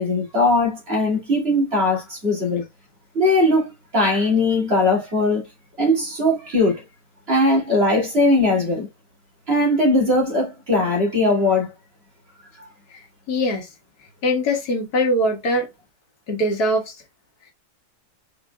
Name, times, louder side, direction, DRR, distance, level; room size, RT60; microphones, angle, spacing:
voice 1, 0.0-2.6 3.1-3.7 3.9-5.4 5.8-6.8 7.3-8.9 9.5-11.7 12.6-12.7, left 1 dB, 40° right, 2.8 m, -19 dB
voice 2, 13.3-13.7 14.2-15.7 16.3-17.0, left 1 dB, 85° left, 1.9 m, -22 dB
5.0 x 4.7 x 2.2 m
omnidirectional pair, 1.6 m